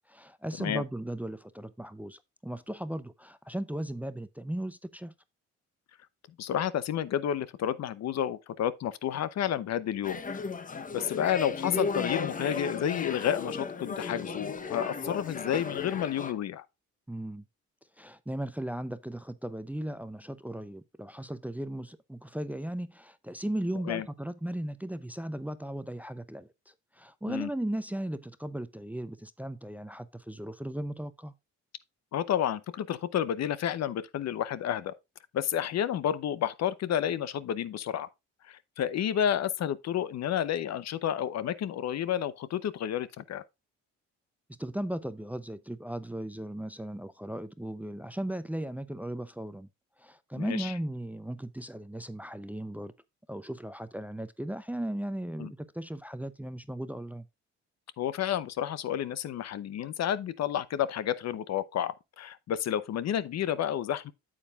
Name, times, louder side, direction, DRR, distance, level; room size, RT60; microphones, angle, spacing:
voice 1, 0.0-5.1 17.1-17.4 18.0-31.3 44.5-49.7 50.0-52.9 53.3-57.3, right 1 dB, 5° right, 0.5 m, -37 dB
voice 2, 6.4-10.2 10.9-16.7 23.9-24.0 27.3-27.5 32.1-34.9 35.3-38.1 38.4-43.4 50.4-50.7 55.4-55.5 58.0-64.1, left 10 dB, 60° left, 0.7 m, -30 dB
sound 1, 10.0-16.3, left 4 dB, 25° left, 0.8 m, -35 dB
8.8 x 7.3 x 2.3 m
cardioid pair, 90°, 30 cm